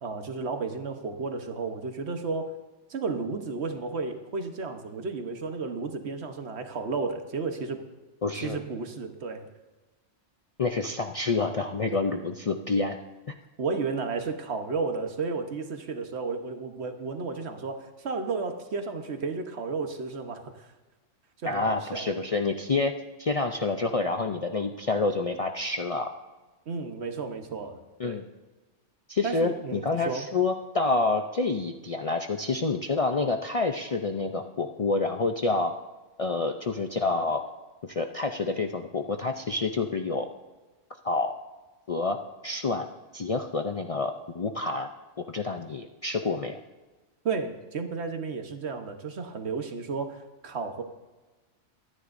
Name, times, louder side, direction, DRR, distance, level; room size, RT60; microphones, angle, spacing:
voice 1, 0.0-2.5 2.9-7.8 8.3-9.5 13.6-20.7 21.4-22.1 26.7-28.2 29.2-30.3 47.2-50.8, right 4 dB, 65° right, 6 dB, 1.3 m, -33 dB
voice 2, 8.2-8.6 10.6-13.0 21.4-22.9 23.2-26.1 28.0-28.3 29.1-35.7 36.2-37.4 37.9-40.3 41.0-41.4 41.9-42.9 43.1-44.9 45.3-46.6, left 3 dB, 45° left, 5 dB, 0.5 m, -28 dB
24.0 x 9.9 x 2.6 m, 1.2 s
omnidirectional pair, 1.2 m